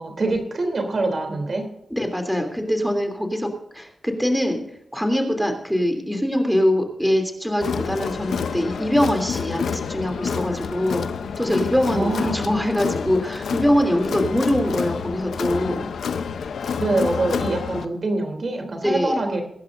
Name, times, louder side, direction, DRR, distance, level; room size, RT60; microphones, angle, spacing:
voice 1, 0.0-1.7 11.9-12.5 16.8-19.4, right 2 dB, 55° right, 4 dB, 3.3 m, -24 dB
voice 2, 1.9-3.5 3.7-4.6 4.9-11.0 11.4-15.9 18.8-19.1, equal, ahead, 4 dB, 3.1 m, -23 dB
Crowd, 7.6-17.8, left 6 dB, 85° left, 0.8 m, -28 dB
23.0 x 11.0 x 2.7 m, 0.76 s
cardioid pair, 60°, 0 cm